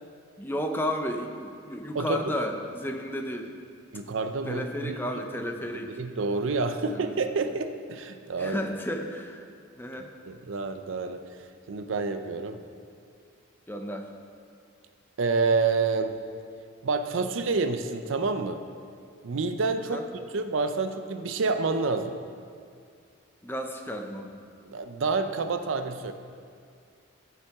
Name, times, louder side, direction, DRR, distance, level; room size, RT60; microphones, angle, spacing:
voice 1, 0.4-3.5 4.4-5.9 6.9-7.3 8.4-9.5 9.8-10.1 13.7-14.1 19.9-20.0 23.4-24.4, equal, 10° left, 4 dB, 0.5 m, -33 dB
voice 2, 3.9-5.0 6.0-8.6 10.3-11.2 11.7-12.6 15.2-16.2 16.8-18.6 19.2-20.0 20.3-22.2 24.6-26.1, right 4 dB, 70° right, 8 dB, 0.5 m, -28 dB
14.5 x 5.8 x 3.5 m, 2.3 s
head